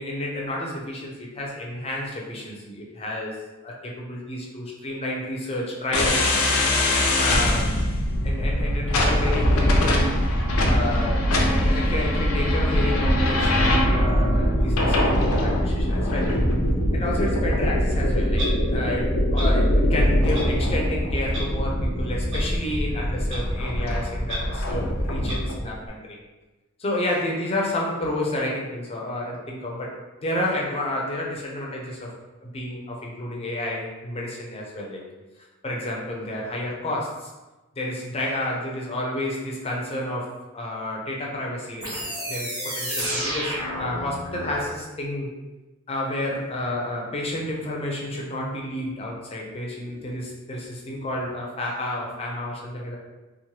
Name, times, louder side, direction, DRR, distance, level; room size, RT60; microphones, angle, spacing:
voice 1, 0.0-3.4 3.6-6.4 7.1-7.8 8.2-10.2 10.6-16.3 16.9-26.2 26.8-32.1 32.4-35.0 35.6-37.3 37.7-45.3 45.9-53.0, left 1 dB, 30° left, -2 dB, 0.5 m, -30 dB
sound 1, 5.9-25.6, left 1 dB, 85° left, 0.5 m, -22 dB
Clock, 18.4-18.5 19.3-19.5 20.3-20.5 21.3-21.4 22.3-22.4 23.3-23.4 24.3-24.4 25.3-25.4, right 1 dB, 60° right, 0.7 m, -32 dB
sound 2, 41.8-44.7, equal, 20° right, 0.9 m, -30 dB
3.0 x 2.1 x 2.8 m, 1.1 s
head